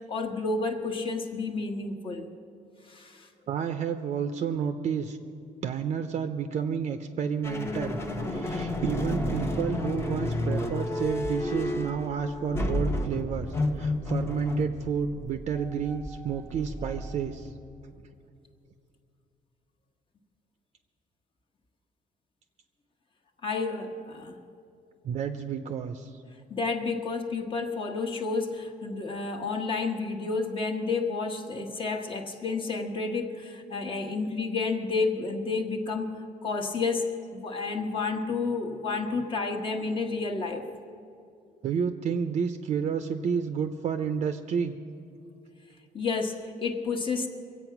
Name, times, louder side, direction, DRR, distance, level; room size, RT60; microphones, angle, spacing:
voice 1, 0.1-2.3 2.9-3.3 23.4-24.4 26.5-40.6 45.9-47.3, left 4 dB, 35° left, 3 dB, 1.3 m, -30 dB
voice 2, 3.5-5.2 5.6-8.0 8.3-17.5 25.0-26.2 41.6-44.8, right 7 dB, 45° right, 7 dB, 0.6 m, -30 dB
sound 1, 7.4-17.5, left 1 dB, 15° left, 0.9 m, -31 dB
23.0 x 8.4 x 5.9 m, 2.6 s
cardioid pair, 160°, 16 cm